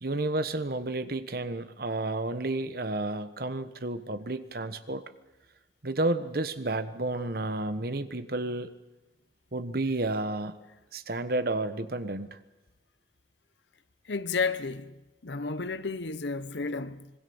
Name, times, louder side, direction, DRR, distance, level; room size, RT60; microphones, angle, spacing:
voice 1, 0.0-5.0 5.8-8.7 9.5-10.6 10.9-12.4, right 2 dB, 55° right, 1.3 m, -31 dB
voice 2, 14.0-17.1, left 4 dB, 75° left, 0.9 m, -32 dB
26.0 x 20.5 x 7.1 m
head